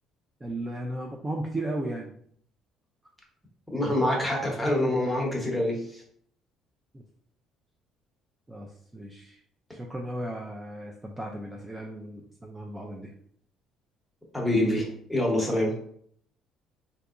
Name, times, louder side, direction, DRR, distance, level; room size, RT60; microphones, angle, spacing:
voice 1, 0.4-2.1 6.9-7.0 8.5-9.4 9.7-13.1, right 1 dB, 15° right, 0 dB, 0.4 m, -35 dB
voice 2, 3.7-6.0 14.3-15.8, left 1 dB, ahead, -2 dB, 0.9 m, -26 dB
3.4 x 2.8 x 2.5 m, 0.65 s
cardioid pair, 120°, 0 cm